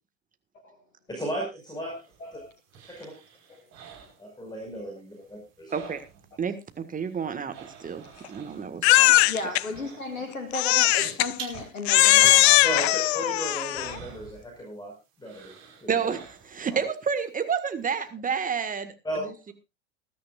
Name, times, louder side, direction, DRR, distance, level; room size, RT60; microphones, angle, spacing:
voice 1, 1.1-1.9 2.3-2.4 2.9-3.1 4.2-5.9 12.6-14.9 15.2-15.5 15.8-16.1 16.7-16.9 19.0-19.3, right 1 dB, 10° left, 5.4 m, -35 dB
voice 2, 1.8-2.5 5.2-5.3 8.0-8.2 9.3-13.0, left 3 dB, 85° left, 1.7 m, -35 dB
sound 1, 1.8-4.8 5.1-6.4 6.7-14.9 15.2-16.7 17.1-17.2, right 7 dB, 40° right, 5.2 m, -47 dB
voice 3, 6.4-7.5 7.8-9.3 15.9-16.2 16.5-18.9 19.2-19.5, right 6 dB, 20° right, 1.7 m, -30 dB
Crying sobbing, 8.8-9.6 10.5-11.3 11.9-14.0, left 18 dB, 55° left, 0.6 m, -19 dB
20.5 x 12.5 x 2.5 m
figure-of-eight pair, 85°, 39 cm